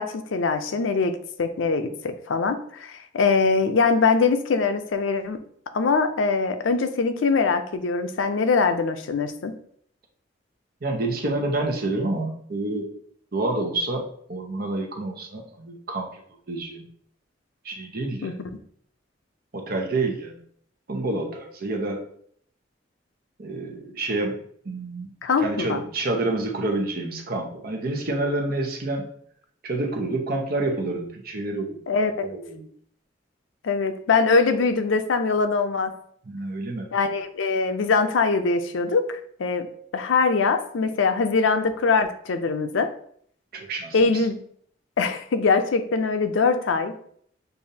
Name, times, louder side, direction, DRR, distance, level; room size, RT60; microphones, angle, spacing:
voice 1, 0.0-5.4 5.7-9.5 18.2-18.5 25.2-25.8 31.9-32.3 33.6-35.9 36.9-39.7 39.9-42.9 43.9-44.4 45.0-46.9, left 4 dB, 90° left, 8 dB, 0.5 m, -22 dB
voice 2, 10.8-12.9 13.3-16.1 16.5-16.9 17.6-18.3 19.5-20.4 20.9-22.0 23.4-25.1 25.4-29.1 29.6-31.8 32.2-32.7 36.3-36.9 43.5-44.0, right 2 dB, 55° right, 2 dB, 0.8 m, -28 dB
6.7 x 2.6 x 2.7 m, 0.63 s
head